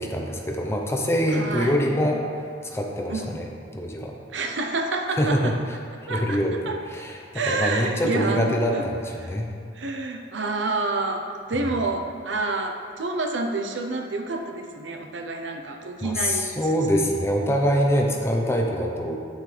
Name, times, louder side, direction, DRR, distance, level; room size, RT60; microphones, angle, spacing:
voice 1, 0.0-2.2 2.6-3.5 3.7-4.1 5.2-5.5 6.1-9.5 16.0-19.2, equal, 15° left, 1 dB, 0.8 m, -24 dB
voice 2, 1.3-1.8 3.1-3.4 4.3-5.5 6.1-6.8 7.3-8.9 9.2-9.3 9.8-16.5 16.9-17.0, right 3 dB, 80° right, 4 dB, 0.8 m, -28 dB
9.2 x 7.9 x 3.4 m, 2.4 s
head